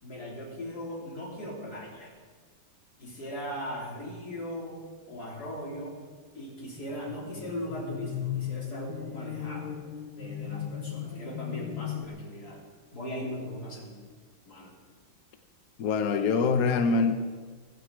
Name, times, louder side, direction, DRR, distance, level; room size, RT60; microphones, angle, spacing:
voice 1, 0.0-2.1 3.0-6.0 6.3-9.8 10.2-12.6 12.9-13.9 14.4-14.8, equal, 45° left, -2 dB, 4.1 m, -38 dB
sound 1, 6.8-12.1, left 10 dB, 75° left, 1.8 m, -37 dB
voice 2, 15.8-17.1, left 4 dB, 60° left, 7 dB, 1.0 m, -24 dB
17.5 x 16.0 x 4.7 m, 1.5 s
omnidirectional pair, 2.4 m